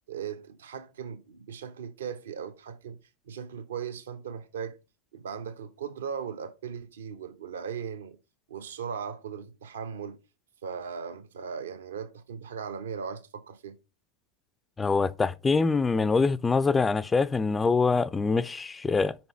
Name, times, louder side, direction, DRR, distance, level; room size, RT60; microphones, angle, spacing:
voice 1, 0.1-3.0 3.3-4.8 5.1-8.2 8.5-10.2 10.6-13.8, right 7 dB, 65° right, 0.9 m, -38 dB
voice 2, 14.8-19.2, left 4 dB, 15° left, 0.4 m, -24 dB
6.0 x 5.3 x 4.4 m
figure-of-eight pair, 90°, 0 cm